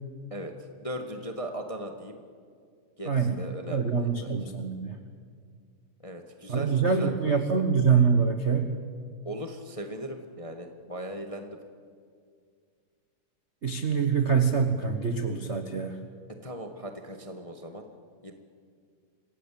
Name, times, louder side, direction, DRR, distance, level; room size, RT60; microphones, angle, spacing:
voice 1, 0.8-2.2 3.0-4.3 6.0-7.4 9.2-11.6 16.4-17.8 18.2-18.3, equal, 25° left, 5 dB, 0.7 m, -38 dB
voice 2, 3.0-3.4 3.7-5.0 6.5-8.7 13.6-16.0, right 6 dB, 80° right, 6 dB, 0.6 m, -25 dB
27.0 x 16.5 x 8.5 m, 2.1 s
omnidirectional pair, 3.4 m